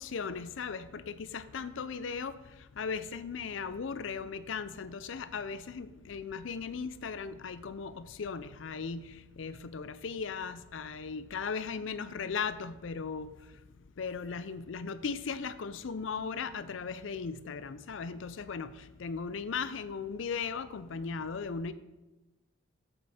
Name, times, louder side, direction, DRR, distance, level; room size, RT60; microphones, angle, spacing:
voice 1, 0.0-2.4 2.8-9.1 9.4-13.3 14.0-18.7 19.0-21.7, left 5 dB, 70° left, 14 dB, 0.5 m, -37 dB
7.9 x 7.8 x 4.2 m, 1.1 s
head